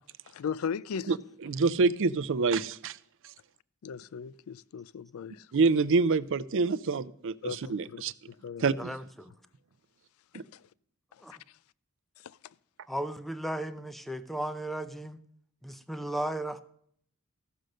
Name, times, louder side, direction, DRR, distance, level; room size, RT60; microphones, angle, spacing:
voice 1, 0.3-1.1 3.8-5.5 7.4-8.0 8.3-8.6 10.5-10.6 12.2-12.4, left 6 dB, 70° left, 0.4 m, -37 dB
voice 2, 1.4-3.0 5.5-8.1 8.6-8.9 10.3-10.4, right 4 dB, 60° right, 0.5 m, -26 dB
voice 3, 8.8-9.3 11.2-11.3 12.9-15.2 15.6-16.6, right 1 dB, ahead, 0.5 m, -35 dB
14.0 x 6.4 x 6.5 m
head